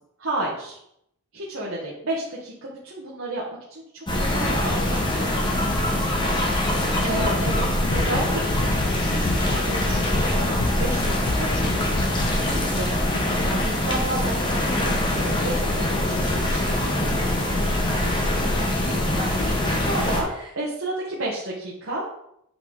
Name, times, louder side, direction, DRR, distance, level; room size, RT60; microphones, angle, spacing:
voice 1, 0.2-0.8 1.3-3.4 3.7-5.8 6.1-7.6 7.9-17.4 19.8-20.3 20.5-22.1, right 1 dB, 60° right, -6 dB, 1.5 m, -32 dB
sound 1, 4.1-20.2, left 1 dB, 20° left, 1.2 m, -23 dB
voice 2, 5.8-6.5 6.8-7.3 17.8-19.8 20.2-20.5, right 1 dB, 20° right, -4 dB, 2.0 m, -39 dB
sound 2, 7.2-9.6 9.9-10.3 10.6-11.0 11.2-11.6 11.9-12.3, left 2 dB, 85° left, 0.8 m, -30 dB
8.3 x 5.7 x 4.0 m, 0.76 s
head